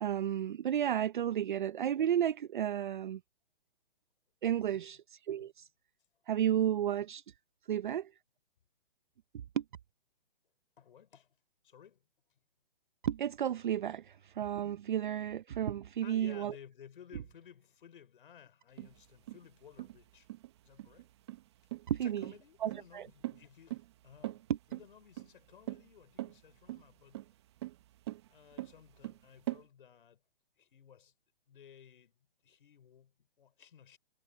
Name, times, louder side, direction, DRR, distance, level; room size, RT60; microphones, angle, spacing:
voice 1, 0.0-3.2 4.4-5.0 5.3-5.7 6.3-7.2 7.7-8.1 9.6-9.7 13.0-16.5 21.9-22.3 22.6-23.1 24.5-24.6, right 10 dB, 55° right, 0.7 m, -32 dB
voice 2, 10.8-11.4 11.6-12.0 16.0-20.3 20.6-21.1 21.9-24.4 24.7-27.3 28.3-30.2 30.6-31.1 31.5-32.1 32.4-34.0, left 8 dB, 60° left, 5.7 m, -57 dB
sound 1, 18.8-29.6, right 16 dB, 25° right, 1.0 m, -43 dB
hypercardioid pair, 165°, 30 cm